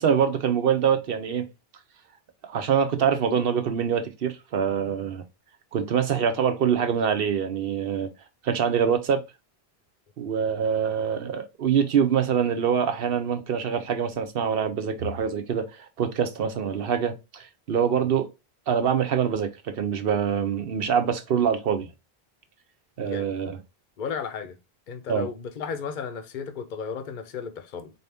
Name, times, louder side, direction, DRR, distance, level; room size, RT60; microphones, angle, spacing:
voice 1, 0.0-1.5 2.4-5.2 5.7-8.1 8.4-9.2 10.2-18.3 18.7-21.9 23.0-23.6 25.1-25.3, right 7 dB, 65° right, 0.9 m, -25 dB
voice 2, 23.0-23.3 24.0-24.6 24.9-27.9, left 6 dB, 55° left, 0.8 m, -34 dB
4.3 x 2.7 x 3.3 m
omnidirectional pair, 1.0 m